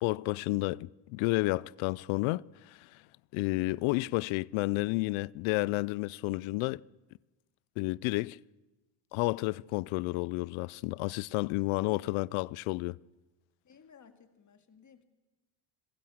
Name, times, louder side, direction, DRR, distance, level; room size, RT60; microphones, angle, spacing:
voice 1, 0.0-2.8 3.3-6.8 7.8-8.4 9.1-13.0, left 22 dB, 75° left, 0.6 m, -31 dB
voice 2, 11.9-12.3 13.6-15.0, left 7 dB, 35° left, 2.3 m, -56 dB
26.0 x 16.0 x 6.4 m
supercardioid pair, 80°, 49 cm